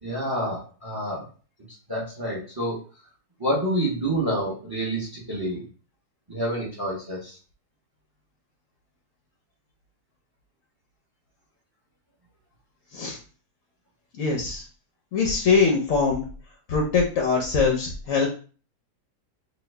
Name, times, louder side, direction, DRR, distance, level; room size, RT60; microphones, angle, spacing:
voice 1, 0.0-1.2 1.9-2.8 3.4-5.6 6.3-7.4, right 1 dB, 25° right, -5 dB, 0.5 m, -28 dB
voice 2, 14.2-14.6 15.1-16.2 16.7-18.3, left 5 dB, 65° left, 0 dB, 0.8 m, -22 dB
3.0 x 2.3 x 3.2 m, 0.38 s
omnidirectional pair, 2.0 m